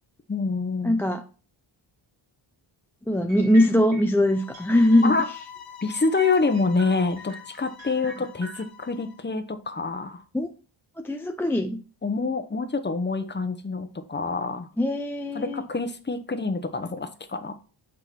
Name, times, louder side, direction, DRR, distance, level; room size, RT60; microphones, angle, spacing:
voice 1, 0.3-0.9 5.0-5.2 5.8-10.2 12.0-14.7 15.3-17.5, left 4 dB, 20° left, 9 dB, 0.9 m, -26 dB
voice 2, 0.8-1.2 3.1-5.4 10.3-10.5 11.0-11.8 14.8-15.6, left 1 dB, 5° left, 5 dB, 0.5 m, -21 dB
sound 1, 3.3-4.2 4.5-5.3 5.6-5.7 6.2-8.6, equal, 75° right, 2.3 m, -42 dB
sound 2, 4.2-9.2, left 8 dB, 50° left, 1.3 m, -45 dB
8.3 x 3.7 x 4.5 m, 0.38 s
cardioid pair, 75°, 49 cm